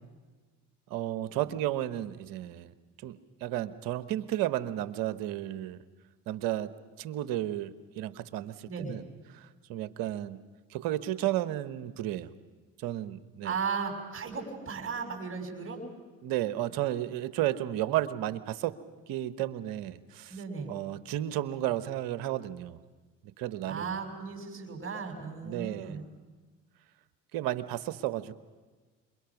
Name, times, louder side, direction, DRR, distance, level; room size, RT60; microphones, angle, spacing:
voice 1, 0.9-2.7 3.0-5.8 6.3-6.7 7.0-9.0 9.3-10.4 10.7-12.3 12.8-13.5 16.2-18.8 19.1-20.4 20.7-22.8 23.4-24.0 25.4-26.0 27.3-28.3, right 13 dB, 70° right, 13 dB, 1.1 m, -33 dB
voice 2, 8.7-9.0 13.4-15.8 20.3-20.7 23.7-26.0, right 5 dB, 35° right, 2 dB, 5.9 m, -36 dB
27.5 x 22.5 x 6.0 m, 1.4 s
hypercardioid pair, 65°, 36 cm